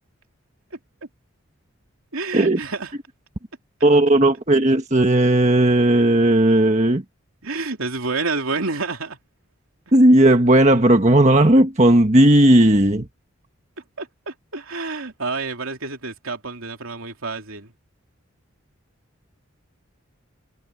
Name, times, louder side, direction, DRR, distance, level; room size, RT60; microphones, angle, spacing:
voice 1, 2.1-2.9 7.4-9.2 14.0-17.7, right 3 dB, 75° right, 3.0 m, -29 dB
voice 2, 3.8-7.0 9.9-13.1, right 1 dB, 30° right, 1.4 m, -15 dB
head